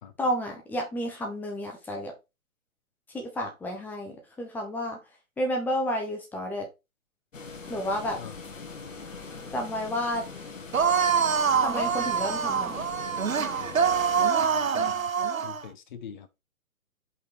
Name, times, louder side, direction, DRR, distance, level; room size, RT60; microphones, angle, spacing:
voice 1, 0.2-2.1 3.1-5.0 5.4-6.7 7.7-8.2 9.5-10.2 11.6-12.8, equal, 5° left, 1.0 m, -31 dB
sound 1, 7.3-14.3, left 4 dB, 65° left, 1.5 m, -42 dB
sound 2, 10.7-15.6, right 6 dB, 75° right, 0.9 m, -25 dB
voice 2, 14.4-15.0 15.4-16.3, left 8 dB, 35° left, 1.0 m, -44 dB
5.5 x 4.5 x 4.4 m
figure-of-eight pair, 125°, 42 cm